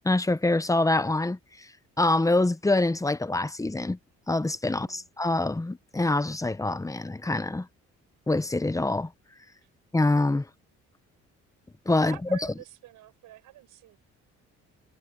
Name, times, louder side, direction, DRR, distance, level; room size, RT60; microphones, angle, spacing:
voice 1, 0.0-1.7 2.0-4.0 4.3-7.7 8.3-9.1 9.9-10.5 11.9-12.4, left 2 dB, 10° left, 0.9 m, -25 dB
voice 2, 4.7-5.1 9.6-9.7 12.0-14.0, right 15 dB, 90° right, 6.9 m, -47 dB
cardioid pair, 90°, 30 cm